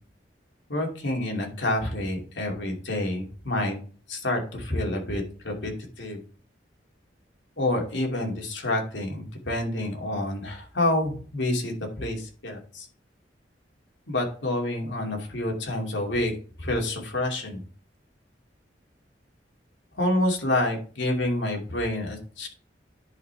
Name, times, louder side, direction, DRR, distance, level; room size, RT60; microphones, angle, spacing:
voice 1, 0.7-3.7 4.1-5.7 6.0-6.2 7.6-12.9 14.1-17.6 20.0-22.5, left 1 dB, 80° left, 1 dB, 2.5 m, -28 dB
10.5 x 5.2 x 3.4 m, 0.40 s
head